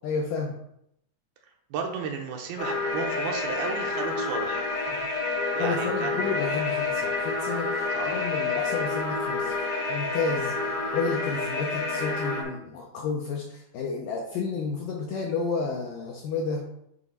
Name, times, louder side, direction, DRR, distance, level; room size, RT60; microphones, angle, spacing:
voice 1, 0.0-0.6 5.6-10.6 10.9-16.6, left 4 dB, 80° left, 0 dB, 2.0 m, -31 dB
voice 2, 1.7-4.7 5.6-6.3 7.9-8.2, right 5 dB, 80° right, 2 dB, 2.5 m, -33 dB
sound 1, 2.6-12.4, left 3 dB, 60° left, 1.5 m, -29 dB
8.2 x 3.0 x 5.3 m, 0.76 s
omnidirectional pair, 4.6 m